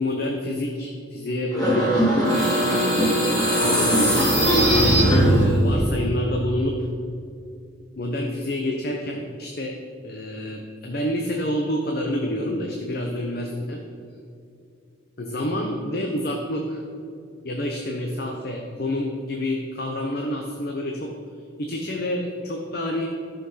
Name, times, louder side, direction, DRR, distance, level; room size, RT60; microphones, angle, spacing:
voice 1, 0.0-2.4 3.6-5.0 5.3-6.9 8.0-9.8 10.0-13.8 15.2-16.8 17.4-21.1 21.6-23.1, left 1 dB, 50° left, 1 dB, 0.9 m, -28 dB
sound 1, 1.5-5.8, equal, 20° left, 3.0 m, -19 dB
12.5 x 6.2 x 5.6 m, 2.4 s
head